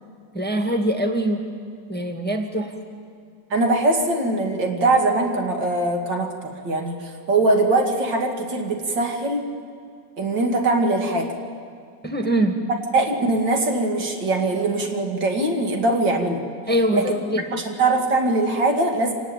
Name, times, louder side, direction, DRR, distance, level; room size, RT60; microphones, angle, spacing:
voice 1, 0.3-1.4 1.9-2.7 12.0-12.6 16.7-17.5, right 1 dB, 5° left, 4 dB, 1.5 m, -23 dB
voice 2, 3.5-9.4 10.2-11.3 12.9-16.4 16.9-17.0 17.5-19.1, right 2 dB, 80° right, 3 dB, 3.0 m, -22 dB
25.5 x 19.0 x 9.0 m, 2.2 s
omnidirectional pair, 2.0 m